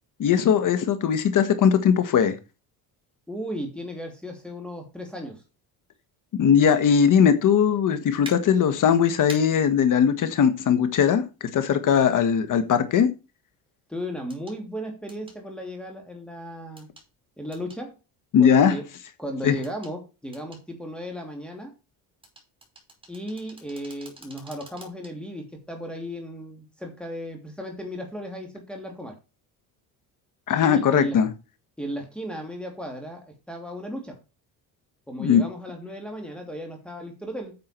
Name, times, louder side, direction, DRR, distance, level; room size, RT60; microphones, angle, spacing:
voice 1, 0.2-2.3 6.4-11.2 11.5-13.1 18.3-18.8 19.4-19.5 30.5-31.3 35.2-35.4, left 7 dB, 55° left, 1.6 m, -19 dB
voice 2, 3.3-5.4 12.0-12.1 13.9-16.9 17.4-17.9 18.4-18.9 19.2-21.7 23.1-29.2 30.6-31.2 31.8-34.2 35.1-37.5, equal, 5° left, 2.9 m, -35 dB
sound 1, 8.2-8.4 9.3-9.4 11.4-11.5 14.3-14.6 15.1-15.4 16.8-17.1 17.5-17.8 19.6-19.9 20.3-20.6 22.2-25.1 25.6-25.7, right 2 dB, 15° right, 5.3 m, -44 dB
9.6 x 7.7 x 4.5 m
cardioid pair, 115°, 37 cm